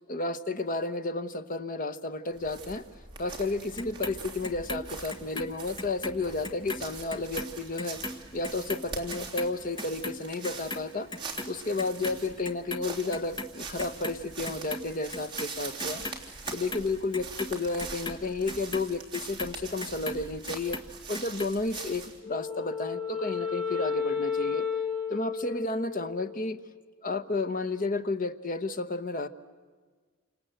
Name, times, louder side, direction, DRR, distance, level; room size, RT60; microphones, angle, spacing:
voice 1, 0.1-2.8 3.2-8.0 8.3-11.1 11.5-16.0 16.5-20.8 21.1-24.7 25.1-26.6 27.0-29.3, left 3 dB, 40° left, 11 dB, 1.1 m, -32 dB
sound 1, 2.3-22.2, right 4 dB, 20° right, 3.1 m, -43 dB
Clock, 3.8-6.2 6.4-12.9 13.1-14.2 14.4-15.5 15.8-20.2 20.5-21.5 21.8-21.9, left 2 dB, 20° left, 1.4 m, -38 dB
Wind instrument woodwind instrument, 22.2-26.7, left 6 dB, 55° left, 6.1 m, -32 dB
28.5 x 26.5 x 8.0 m, 1.5 s
head